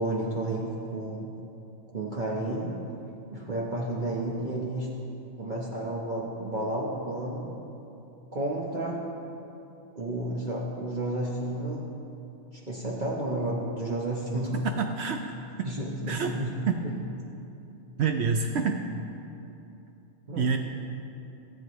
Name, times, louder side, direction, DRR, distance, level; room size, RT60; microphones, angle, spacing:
voice 1, 0.0-1.3 1.9-2.7 3.3-4.9 5.4-7.5 8.3-9.0 9.9-11.8 12.5-14.6 15.6-17.0 20.3-20.6, right 1 dB, 40° right, -4 dB, 1.1 m, -31 dB
voice 2, 14.8-15.3 16.1-16.3 16.7-16.8 18.0-18.8 20.4-20.6, right 5 dB, 65° right, 4 dB, 0.8 m, -27 dB
16.0 x 7.9 x 3.0 m, 2.8 s
omnidirectional pair, 1.3 m